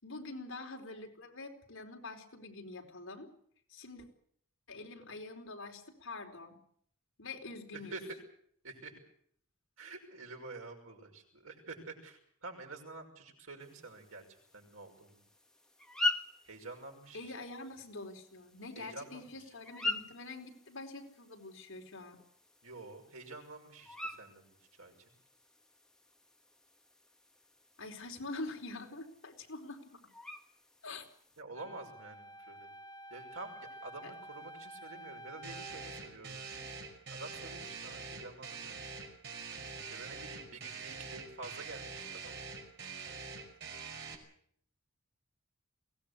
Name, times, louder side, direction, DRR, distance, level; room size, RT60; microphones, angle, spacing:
voice 1, 0.0-3.3 3.7-4.1 4.7-6.6 7.2-8.0 17.1-22.2 27.8-29.8 30.8-31.0 34.0-34.1, left 2 dB, 70° left, 2 dB, 4.3 m, -45 dB
voice 2, 7.7-8.2 8.6-8.9 9.8-14.3 14.5-15.2 16.4-17.3 18.8-19.4 22.6-24.5 24.8-24.9 31.4-32.7 33.1-36.4 37.1-39.1 39.9-42.5, right 3 dB, 80° right, 2 dB, 5.9 m, -48 dB
sound 1, 13.6-31.4, left 2 dB, 5° left, 1.6 m, -44 dB
Wind instrument woodwind instrument, 31.5-36.0, right 1 dB, 20° left, 1.5 m, -50 dB
sound 2, 35.4-44.1, right 5 dB, 55° right, 5.2 m, -45 dB
22.5 x 18.0 x 8.2 m, 0.63 s
head